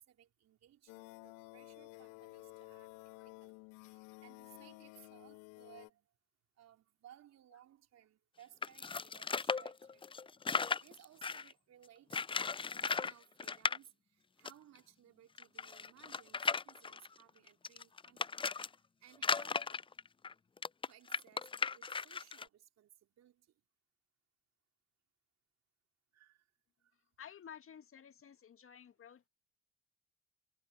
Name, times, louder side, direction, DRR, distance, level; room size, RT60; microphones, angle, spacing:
voice 1, 0.0-3.0 3.2-6.1 6.6-10.5 10.8-18.4 19.0-19.8 20.9-23.5 26.1-26.4, right 11 dB, 50° right, 4.7 m, -62 dB
sound 1, 0.9-5.9, left 31 dB, 65° left, 1.9 m, -53 dB
sound 2, 8.6-11.5 12.1-13.1 13.4-13.8 14.5-14.6 14.8-14.9 15.4-18.7 19.2-22.5, left 5 dB, 15° left, 0.6 m, -36 dB
voice 2, 27.2-29.3, left 8 dB, 40° left, 2.2 m, -54 dB
figure-of-eight pair, 50°, 33 cm